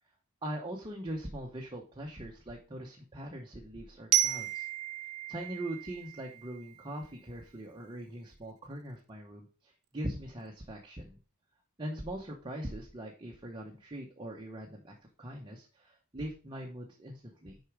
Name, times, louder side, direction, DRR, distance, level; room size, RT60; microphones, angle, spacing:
voice 1, 0.4-4.7 5.3-11.2 11.8-17.6, right 1 dB, 20° right, -1 dB, 0.9 m, -41 dB
Glockenspiel, 4.1-7.0, right 12 dB, 75° right, 0.7 m, -33 dB
6.6 x 4.8 x 4.7 m, 0.38 s
head